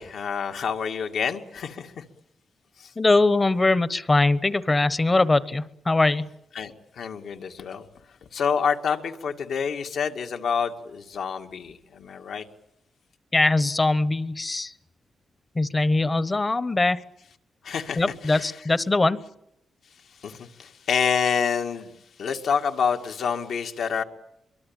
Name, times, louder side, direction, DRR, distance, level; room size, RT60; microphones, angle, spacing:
voice 1, 0.0-2.0 2.8-2.9 6.5-7.9 8.3-12.5 17.6-18.6 20.2-24.0, left 6 dB, 75° left, 4 dB, 2.1 m, -28 dB
voice 2, 3.0-6.3 13.3-14.7 15.5-17.0 18.0-19.2, left 2 dB, 25° left, 16 dB, 1.0 m, -21 dB
24.0 x 23.0 x 9.0 m, 0.82 s
cardioid pair, 120°, 0 cm